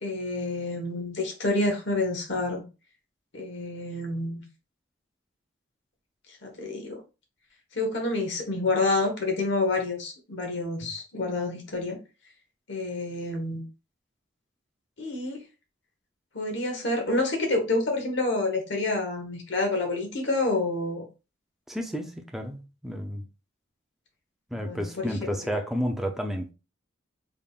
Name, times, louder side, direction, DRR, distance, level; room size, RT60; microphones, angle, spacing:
voice 1, 0.0-2.6 3.3-4.4 6.4-7.0 7.7-12.0 12.7-13.6 15.0-15.4 16.3-21.0 24.5-25.6, left 2 dB, 65° left, 1.2 m, -28 dB
voice 2, 21.7-23.2 24.5-26.5, equal, ahead, 0.5 m, -31 dB
3.6 x 3.5 x 2.4 m
head